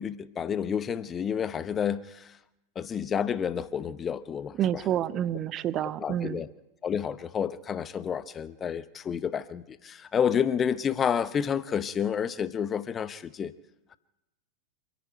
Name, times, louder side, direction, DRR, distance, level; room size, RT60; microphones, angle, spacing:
voice 1, 0.0-2.3 2.7-4.5 6.0-6.5 6.8-13.5, left 7 dB, 25° left, 15 dB, 0.9 m, -29 dB
voice 2, 4.6-6.4, right 11 dB, 30° right, 19 dB, 0.7 m, -28 dB
27.5 x 10.5 x 9.2 m, 0.94 s
figure-of-eight pair, 90°, 0 cm